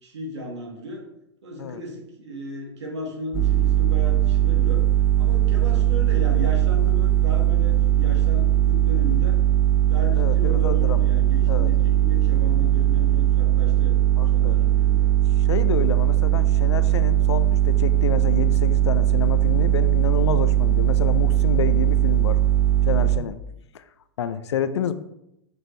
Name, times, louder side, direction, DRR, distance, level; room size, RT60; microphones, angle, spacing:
voice 1, 0.0-1.0 1.4-4.8 5.2-9.4 9.9-13.9 14.3-15.1, equal, 85° right, 0 dB, 1.9 m, -35 dB
sound 1, 3.3-23.2, right 12 dB, 20° right, 0.7 m, -19 dB
voice 2, 10.2-11.0 11.5-11.7 14.2-14.6 15.5-22.4 22.9-23.4 23.7-23.8 24.2-24.9, left 7 dB, 75° left, 12 dB, 0.6 m, -28 dB
6.0 x 5.2 x 3.3 m, 0.82 s
hypercardioid pair, 110°, 14 cm